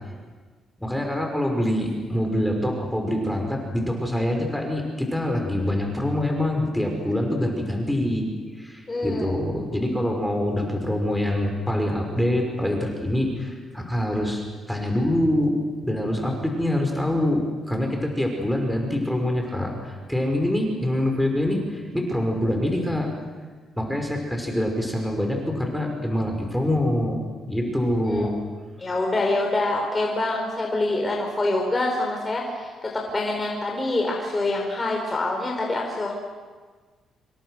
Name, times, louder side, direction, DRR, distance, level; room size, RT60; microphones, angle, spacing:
voice 1, 0.8-8.3 8.5-23.1 23.8-28.4, left 1 dB, 5° left, 2 dB, 5.5 m, -25 dB
voice 2, 8.9-9.4 28.1-28.3 28.8-36.1, left 2 dB, 25° left, 0 dB, 4.9 m, -26 dB
27.5 x 24.0 x 6.5 m, 1.4 s
cardioid pair, 90°, 0 cm